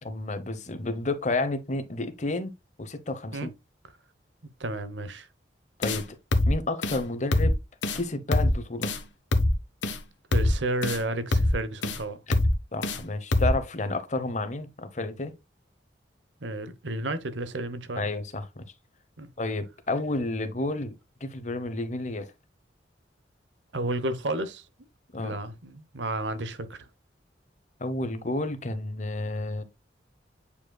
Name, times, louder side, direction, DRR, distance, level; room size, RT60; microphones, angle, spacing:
voice 1, 0.0-2.5 2.8-3.5 5.8-6.2 6.5-7.6 7.9-8.9 12.3-12.4 12.7-15.3 18.0-18.6 19.4-20.9 21.2-22.3 25.1-25.3 27.8-29.6, left 2 dB, 40° left, 1.0 m, -31 dB
voice 2, 4.6-5.3 10.3-12.2 16.4-18.1 19.2-19.3 23.7-24.7 25.2-26.9, right 2 dB, 80° right, 0.9 m, -32 dB
sound 1, 5.8-6.0 6.3-6.5 6.8-7.0 7.3-7.5 7.8-8.0 8.3-8.5 8.8-9.0 9.3-9.5 9.8-10.0 10.3-10.5 10.8-11.0 11.3-11.5 11.8-12.0 12.3-12.5 12.8-13.0 13.3-13.5, left 1 dB, 85° left, 1.1 m, -23 dB
8.4 x 5.1 x 2.3 m
head